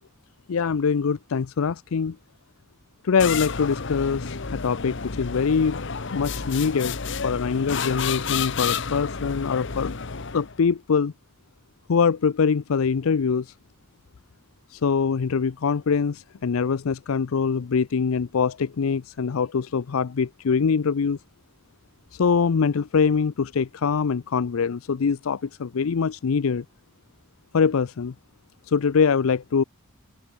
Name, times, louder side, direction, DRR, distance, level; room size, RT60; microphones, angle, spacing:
voice 1, 0.5-2.2 3.0-5.8 6.1-7.0 7.2-9.9 10.3-11.1 11.9-13.5 14.7-21.2 22.1-26.6 27.5-28.1 28.7-29.6, left 5 dB, 80° left, 0.5 m, -23 dB
sound 1, 3.2-10.6, left 5 dB, 60° left, 1.1 m, -30 dB
head